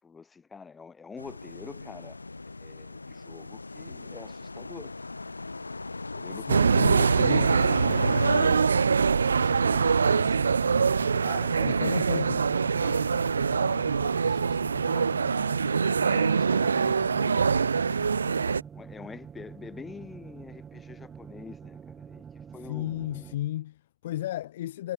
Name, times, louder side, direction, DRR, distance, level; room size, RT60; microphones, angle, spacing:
voice 1, 0.0-2.2 2.6-5.0 6.1-8.8 9.3-10.5 11.2-12.1 12.8-13.2 13.5-15.1 16.0-17.7 18.7-22.2 22.5-22.9, left 5 dB, 15° left, 4.0 m, -45 dB
sound 1, 1.2-8.5, left 3 dB, 80° left, 1.2 m, -36 dB
voice 2, 6.3-7.5 11.6-12.5 22.6-24.9, left 13 dB, 55° left, 1.5 m, -34 dB
sound 2, 6.5-18.6, right 5 dB, 75° right, 0.4 m, -24 dB
sound 3, 7.3-23.4, right 7 dB, 20° right, 3.8 m, -46 dB
figure-of-eight pair, 90°, 0 cm